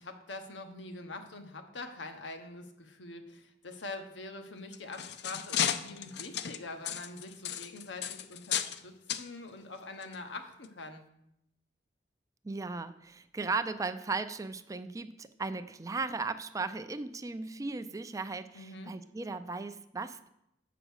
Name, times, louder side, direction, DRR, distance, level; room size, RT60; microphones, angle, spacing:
voice 1, 0.0-11.0 18.5-18.9, left 2 dB, 80° left, 6 dB, 1.0 m, -44 dB
arcade old slot machine, 4.6-8.8 9.1-9.3 10.0-10.1 10.6-10.7, left 9 dB, 60° left, 0.4 m, -34 dB
voice 2, 12.4-20.3, right 3 dB, 20° right, 11 dB, 0.4 m, -36 dB
7.9 x 5.0 x 6.4 m, 0.81 s
head